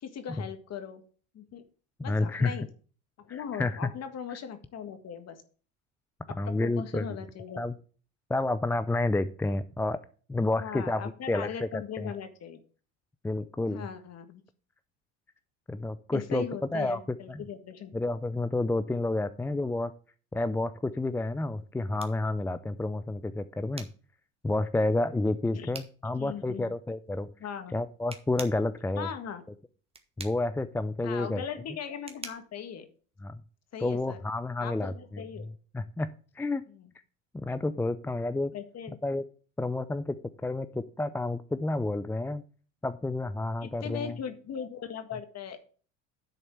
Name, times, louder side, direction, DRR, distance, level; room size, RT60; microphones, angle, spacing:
voice 1, 0.0-1.0 1.3-1.6 2.0-2.7 3.2-5.4 6.3-7.6 10.6-12.6 13.7-14.4 16.1-17.9 25.5-25.7 26.0-26.7 27.4-27.7 29.0-29.4 31.0-32.9 33.7-34.2 34.6-35.5 36.7-36.9 38.5-39.0 43.6-45.6, left 8 dB, 45° left, 9 dB, 1.7 m, -39 dB
voice 2, 2.0-2.6 3.6-3.8 6.4-7.2 7.6-7.7 8.3-10.0 10.3-11.0 11.3-12.1 13.2-13.9 15.7-16.5 16.7-17.0 17.3-17.4 17.9-19.9 20.3-23.9 24.4-27.3 27.7-29.1 30.2-31.4 33.2-33.4 33.8-35.2 35.7-36.6 37.3-38.5 39.0-39.2 39.6-40.2 40.4-42.4 42.8-44.2, left 2 dB, 5° left, 12 dB, 0.3 m, -30 dB
sound 1, 21.2-33.8, right 4 dB, 15° right, 1.3 m, -49 dB
10.0 x 4.2 x 6.8 m, 0.41 s
supercardioid pair, 95°, 37 cm